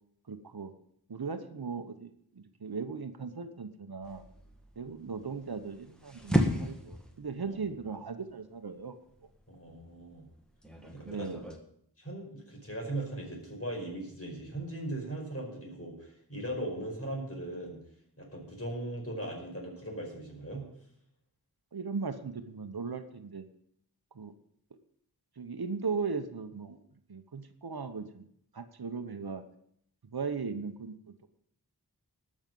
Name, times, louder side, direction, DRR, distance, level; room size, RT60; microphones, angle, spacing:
voice 1, 0.3-0.7 1.1-2.1 2.6-4.2 4.8-8.9 10.8-11.5 21.7-23.4 24.1-24.3 25.4-26.8 27.1-28.2 28.5-29.4 30.1-30.9, right 5 dB, 70° right, 9 dB, 1.0 m, -37 dB
sound 1, 4.0-11.6, equal, ahead, 1.8 m, -36 dB
voice 2, 9.5-10.2 11.2-11.4 12.0-17.8 18.2-20.6, right 1 dB, 35° left, -1 dB, 5.2 m, -39 dB
19.5 x 6.4 x 5.4 m, 0.68 s
wide cardioid pair, 50°, 38 cm